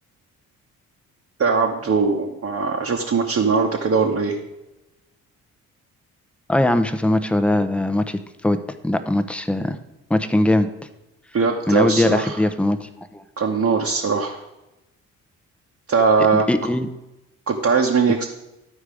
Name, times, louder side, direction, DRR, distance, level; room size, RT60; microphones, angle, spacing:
voice 1, 1.4-4.3 11.3-12.4 13.4-14.4 15.9-16.4 17.5-18.3, right 5 dB, 40° right, 0 dB, 1.1 m, -20 dB
voice 2, 6.5-9.8 10.1-10.7 11.7-13.2 16.5-16.9, left 1 dB, 5° left, 9 dB, 0.7 m, -20 dB
12.0 x 4.6 x 4.9 m, 0.96 s
hypercardioid pair, 45°, 40 cm